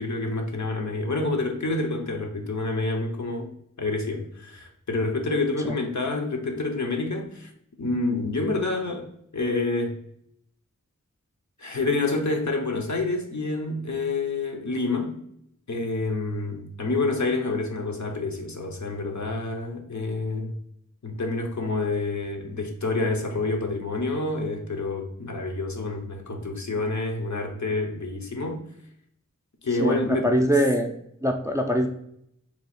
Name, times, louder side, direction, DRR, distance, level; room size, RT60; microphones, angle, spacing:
voice 1, 0.0-3.5 3.8-7.5 7.8-9.1 9.3-10.0 11.6-15.2 15.7-20.5 21.0-28.6 29.6-30.3, left 3 dB, 60° left, 3 dB, 0.7 m, -28 dB
voice 2, 29.8-30.9 31.2-31.9, equal, 10° right, 2 dB, 0.4 m, -22 dB
2.8 x 2.3 x 4.2 m, 0.72 s
wide cardioid pair, 40°, 32 cm